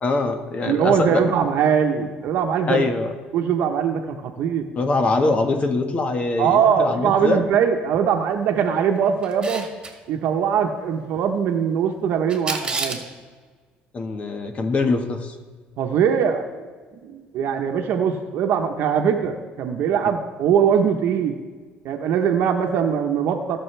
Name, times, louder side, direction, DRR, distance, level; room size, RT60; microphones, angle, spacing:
voice 1, 0.0-1.2 2.7-3.1 4.7-7.4 13.9-15.3, left 3 dB, 35° left, 5 dB, 1.5 m, -23 dB
voice 2, 0.6-2.8 3.3-4.7 6.4-9.7 10.1-13.0 15.8-16.6 17.0-21.4 21.8-23.6, right 7 dB, 70° right, 3 dB, 1.0 m, -21 dB
Camera, 9.2-9.9 12.3-13.1, right 3 dB, 25° right, 2.0 m, -28 dB
19.5 x 6.5 x 3.4 m, 1.4 s
cardioid pair, 100°, 4 cm